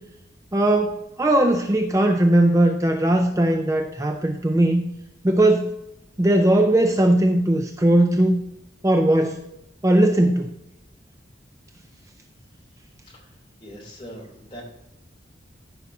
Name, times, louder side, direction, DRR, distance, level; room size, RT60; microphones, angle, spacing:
voice 1, 0.5-4.8 5.2-5.7 6.2-8.4 8.8-9.4 9.8-10.5, right 1 dB, 15° right, 5 dB, 0.5 m, -19 dB
voice 2, 13.6-14.6, equal, 25° left, -3 dB, 3.0 m, -41 dB
14.0 x 5.6 x 2.7 m, 0.88 s
head